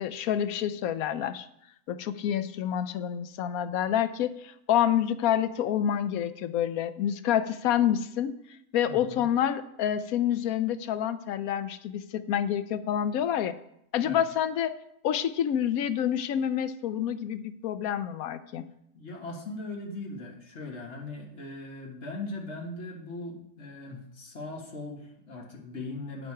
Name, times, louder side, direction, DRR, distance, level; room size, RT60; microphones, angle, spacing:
voice 1, 0.0-1.5 1.9-8.3 8.7-13.5 13.9-14.7 15.0-18.7, left 10 dB, 70° left, 12 dB, 1.0 m, -28 dB
voice 2, 8.9-9.2 14.0-14.2 18.9-26.3, left 2 dB, 45° left, 1 dB, 1.9 m, -39 dB
9.1 x 7.6 x 4.8 m, 0.74 s
omnidirectional pair, 1.7 m